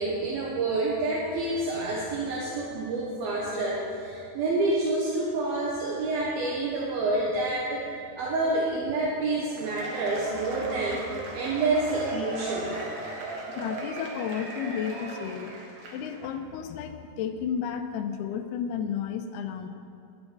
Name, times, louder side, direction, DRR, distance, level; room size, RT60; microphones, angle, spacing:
voice 1, 0.0-12.8, right 2 dB, 70° right, -4 dB, 3.0 m, -28 dB
Cheering / Applause / Crowd, 9.5-16.3, right 2 dB, 55° right, 2.3 m, -38 dB
voice 2, 13.5-15.5 15.9-19.7, left 8 dB, 90° left, 7 dB, 2.7 m, -32 dB
11.0 x 9.0 x 6.9 m, 2.6 s
omnidirectional pair, 4.6 m